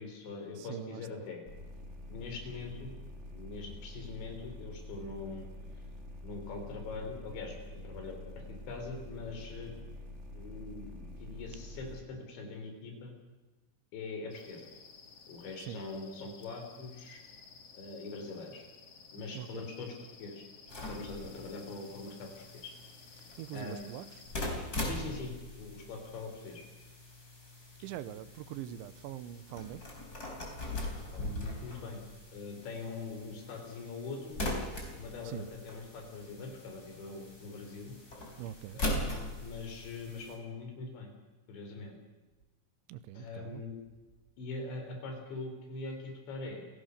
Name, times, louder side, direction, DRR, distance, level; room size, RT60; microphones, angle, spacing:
voice 1, 0.0-1.4 2.1-2.9 3.3-5.5 6.2-9.7 10.3-13.1 13.9-14.7 15.3-17.2 17.7-18.7 19.1-19.9 20.2-20.4 20.9-22.3 22.5-22.7 23.5-23.9 24.7-26.6 31.0-32.0 32.3-34.4 34.9-38.0 38.7-41.1 41.5-41.9 43.2-43.8 44.4-46.6, left 3 dB, 70° left, 6.5 m, -43 dB
voice 2, 0.5-1.2 15.6-15.8 19.3-19.7 23.2-24.2 27.8-29.8 35.2-35.5 38.4-38.8 42.9-43.6, right 12 dB, 80° right, 3.2 m, -43 dB
sound 1, 1.5-12.0, left 1 dB, 30° right, 1.2 m, -47 dB
sound 2, 14.3-24.3, left 5 dB, 50° left, 2.0 m, -55 dB
sound 3, 20.7-40.4, left 1 dB, 20° left, 4.3 m, -41 dB
28.5 x 17.0 x 6.7 m
omnidirectional pair, 5.4 m